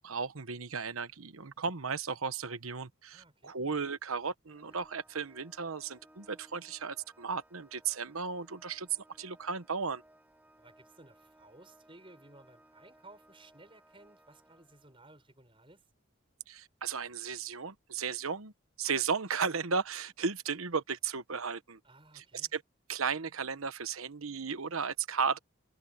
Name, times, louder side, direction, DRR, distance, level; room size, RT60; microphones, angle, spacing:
voice 1, 0.0-8.9 9.2-10.0 16.5-18.5 18.8-21.8 22.1-22.6 22.9-25.4, right 5 dB, 90° right, 1.2 m, -35 dB
voice 2, 3.1-3.6 10.6-15.9 21.8-22.5, right 2 dB, 25° right, 7.0 m, -57 dB
Organ, 4.5-15.2, right 1 dB, 10° right, 6.2 m, -62 dB
Keyboard (musical), 4.7-7.3, left 3 dB, 20° left, 7.5 m, -78 dB
head